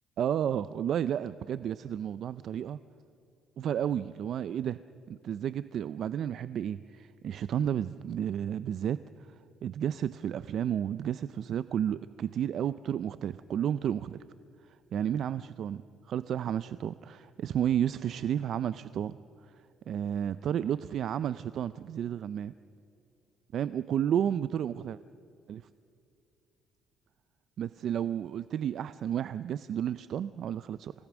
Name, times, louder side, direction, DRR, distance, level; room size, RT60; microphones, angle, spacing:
voice 1, 0.2-2.8 3.6-4.8 5.1-9.0 9.6-14.2 14.7-15.8 16.1-19.2 19.9-22.5 23.5-25.0 25.5-25.6 27.6-30.9, right 9 dB, 60° right, 14 dB, 0.4 m, -32 dB
29.0 x 18.0 x 6.1 m, 2.6 s
cardioid pair, 115°, 0 cm